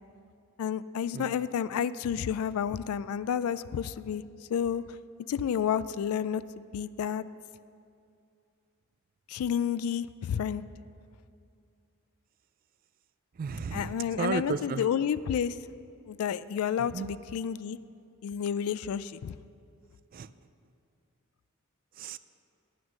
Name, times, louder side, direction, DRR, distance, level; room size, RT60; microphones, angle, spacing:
voice 1, 0.6-4.2 4.5-4.8 5.3-7.2 9.3-10.6 13.7-15.6 16.1-17.8 18.2-19.4, left 8 dB, 80° left, 15 dB, 0.3 m, -30 dB
voice 2, 13.3-14.9 16.8-17.1 20.1-20.3 22.0-22.2, right 5 dB, 40° right, 14 dB, 0.3 m, -34 dB
9.2 x 9.0 x 6.2 m, 2.5 s
head